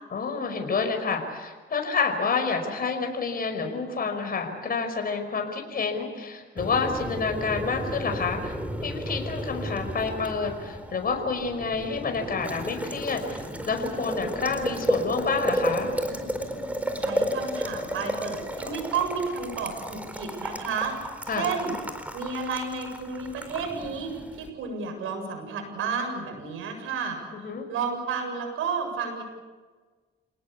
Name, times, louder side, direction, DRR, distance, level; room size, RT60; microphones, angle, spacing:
voice 1, 0.1-8.6 8.8-15.9 21.3-21.5 27.4-27.7, left 4 dB, 45° left, 4 dB, 5.4 m, -29 dB
Boiling, 6.6-24.5, equal, 5° right, 4.2 m, -33 dB
voice 2, 17.0-21.0 21.2-21.7 22.1-27.2 27.7-29.2, right 5 dB, 80° right, 4 dB, 7.7 m, -31 dB
29.0 x 18.5 x 8.5 m, 1.4 s
cardioid pair, 80°, 21 cm